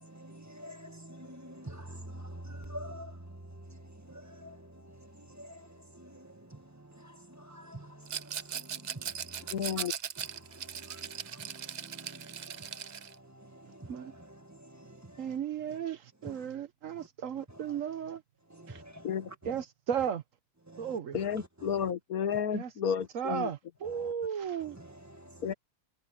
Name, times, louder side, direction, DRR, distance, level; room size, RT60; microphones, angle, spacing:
voice 1, 0.0-9.9 10.2-15.4 15.7-15.8 16.2-16.5 16.9-17.1 17.4-17.8 18.4-19.6 20.6-21.9 22.3-22.4 23.8-24.1 24.6-25.5, right 1 dB, 10° right, 1.6 m, -48 dB
Rattle, 8.0-13.1, right 8 dB, 80° right, 0.3 m, -39 dB
voice 2, 9.5-9.9 19.0-19.3 21.1-23.5 25.4-25.5, left 8 dB, 75° left, 1.7 m, -32 dB
voice 3, 15.2-18.2 18.7-18.8 19.4-20.2 20.8-21.2 22.5-22.7 23.1-24.8, right 8 dB, 65° right, 1.2 m, -35 dB
omnidirectional pair, 1.5 m